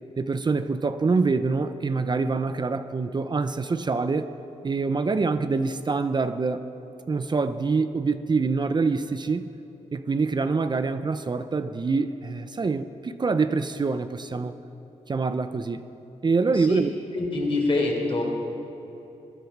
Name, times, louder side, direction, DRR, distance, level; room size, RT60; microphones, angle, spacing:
voice 1, 0.2-4.3 4.6-6.6 7.1-9.5 9.9-14.5 15.1-15.9 16.2-16.9, right 4 dB, 35° right, 10 dB, 0.6 m, -25 dB
voice 2, 17.1-18.2, left 2 dB, 50° left, -1 dB, 4.1 m, -25 dB
21.5 x 11.5 x 6.0 m, 3.0 s
cardioid pair, 90°, 12 cm